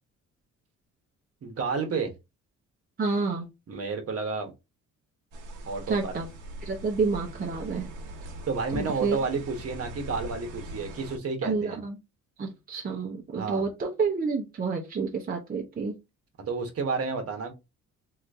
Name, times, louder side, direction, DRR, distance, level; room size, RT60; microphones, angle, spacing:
voice 1, 1.4-2.1 3.7-4.5 5.6-6.2 7.7-7.8 8.5-11.8 13.4-13.6 16.4-17.5, right 4 dB, 50° right, 1.1 m, -31 dB
voice 2, 3.0-3.5 5.9-6.3 6.6-7.9 8.7-9.2 11.4-12.0 12.4-15.9, right 4 dB, 30° right, 0.8 m, -29 dB
sound 1, 5.3-11.2, right 1 dB, 90° right, 0.9 m, -41 dB
2.9 x 2.6 x 3.4 m
cardioid pair, 90°, 30 cm